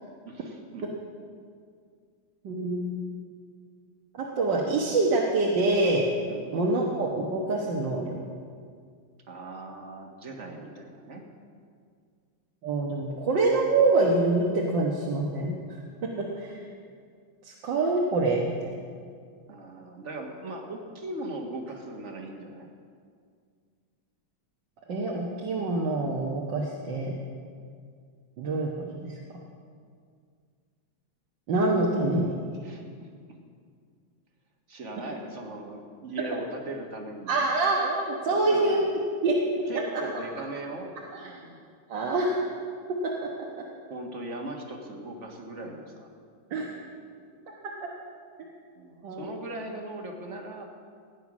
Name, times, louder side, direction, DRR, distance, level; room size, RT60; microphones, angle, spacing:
voice 1, 0.2-0.9 6.3-6.6 9.3-11.2 19.5-22.7 32.6-33.1 34.7-37.4 38.3-38.9 39.2-39.4 39.7-41.6 43.9-46.1 48.7-50.6, right 2 dB, 40° right, 2 dB, 1.6 m, -39 dB
voice 2, 2.4-3.0 4.1-6.1 6.5-8.1 12.6-15.5 16.0-16.6 17.4-18.7 24.9-27.2 28.4-28.7 29.0-29.2 31.5-32.5 37.3-39.4 39.9-40.0 41.1-41.3 41.9-42.5 43.0-43.1 46.5-46.7 47.6-47.9 48.4-48.5 49.0-49.3, right 2 dB, 65° right, -2 dB, 1.9 m, -26 dB
16.5 x 9.2 x 6.1 m, 2.1 s
omnidirectional pair, 2.2 m